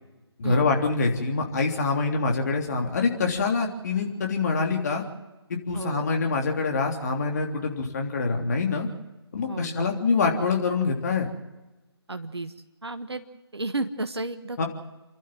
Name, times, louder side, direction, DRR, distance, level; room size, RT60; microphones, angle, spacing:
voice 1, 0.4-5.0 5.5-8.9 9.3-11.3 14.6-14.7, left 4 dB, 40° left, 2 dB, 3.3 m, -25 dB
voice 2, 5.7-6.1 9.5-10.0 12.1-12.5 12.8-13.2 13.5-14.6, right 2 dB, 70° right, 8 dB, 1.4 m, -32 dB
29.5 x 12.0 x 7.5 m, 1.1 s
figure-of-eight pair, 145°, 14 cm